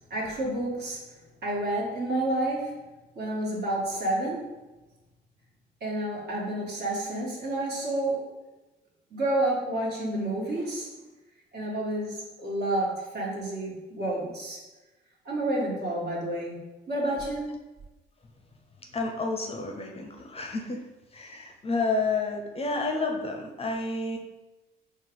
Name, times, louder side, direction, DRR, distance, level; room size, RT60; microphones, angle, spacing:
voice 1, 0.1-1.0 1.4-2.8 3.2-4.5 5.8-8.3 9.1-10.9 11.5-14.6 15.2-16.6 16.9-17.5, right 1 dB, 55° right, -4 dB, 1.4 m, -29 dB
voice 2, 18.9-20.9 21.1-24.2, left 3 dB, 30° left, 2 dB, 0.6 m, -30 dB
4.4 x 2.4 x 3.7 m, 1.1 s
cardioid pair, 90°, 20 cm